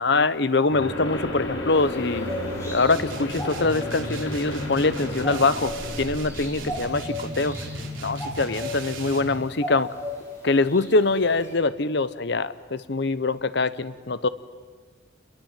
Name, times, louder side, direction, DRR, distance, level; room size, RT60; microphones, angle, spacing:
voice 1, 0.0-2.3 2.6-5.7 6.0-7.6 8.0-9.9 10.4-14.3, left 3 dB, 60° left, 15 dB, 0.9 m, -23 dB
sound 1, 0.7-6.8, left 1 dB, 75° left, 5.7 m, -33 dB
sound 2, 1.7-11.5, left 1 dB, 15° left, 7.4 m, -37 dB
sound 3, 2.9-9.4, right 1 dB, 80° right, 4.3 m, -36 dB
28.0 x 22.0 x 9.1 m, 1.5 s
head